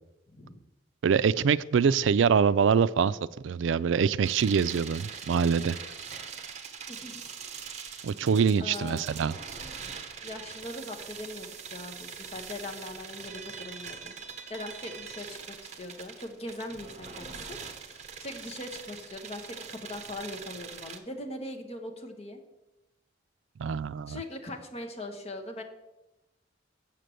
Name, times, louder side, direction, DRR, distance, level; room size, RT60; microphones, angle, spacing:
voice 1, 0.3-0.6 6.9-7.2 8.6-9.1 10.2-14.1 14.5-17.6 17.9-22.4 24.1-25.6, left 1 dB, 35° left, 3 dB, 1.2 m, -41 dB
voice 2, 1.0-3.2 3.4-5.8 8.0-9.3 23.6-24.2, right 6 dB, 80° right, 17 dB, 0.4 m, -24 dB
sound 1, 4.2-21.0, right 6 dB, 35° right, 0.9 m, -43 dB
7.5 x 6.7 x 7.7 m, 0.99 s
head